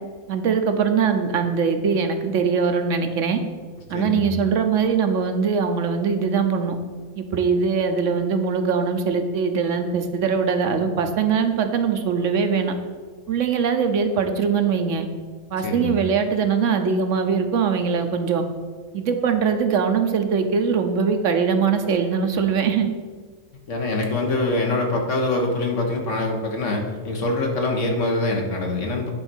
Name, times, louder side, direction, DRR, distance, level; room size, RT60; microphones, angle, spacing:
voice 1, 0.3-3.4 3.9-6.7 7.2-12.7 13.3-15.1 15.5-18.4 18.9-22.9, right 6 dB, 80° right, 6 dB, 1.2 m, -22 dB
voice 2, 3.9-4.3 15.6-15.9 23.7-29.1, left 2 dB, 75° left, 1 dB, 1.6 m, -24 dB
9.8 x 4.0 x 6.2 m, 1.5 s
omnidirectional pair, 1.3 m